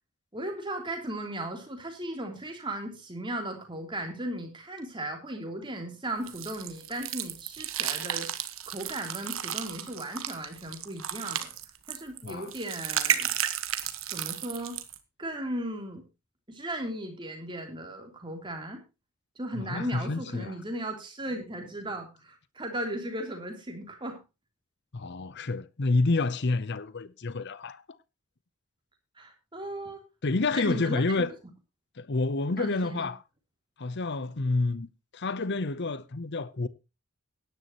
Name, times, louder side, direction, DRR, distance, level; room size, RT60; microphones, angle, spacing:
voice 1, 0.3-8.3 8.7-11.5 11.9-13.3 13.7-13.8 14.1-14.8 15.2-16.0 16.5-18.8 19.3-24.2 29.2-30.0 30.5-31.3 32.6-33.1, right 1 dB, 20° right, 3.3 m, -36 dB
sound 1, 6.3-15.0, right 10 dB, 60° right, 1.4 m, -33 dB
voice 2, 19.7-20.5 24.9-27.8 30.2-31.3 32.0-33.2 33.8-36.7, left 3 dB, 50° left, 0.7 m, -29 dB
17.0 x 11.0 x 3.0 m
head